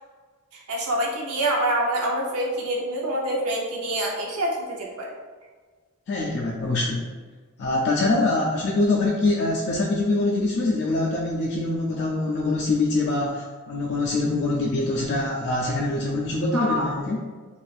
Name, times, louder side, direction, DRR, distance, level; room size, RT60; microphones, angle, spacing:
voice 1, 0.5-5.1 16.5-16.9, right 1 dB, 85° right, -2 dB, 0.7 m, -26 dB
voice 2, 6.1-7.0 7.6-17.2, left 2 dB, 50° left, -3 dB, 0.3 m, -24 dB
2.5 x 2.4 x 3.2 m, 1.4 s
head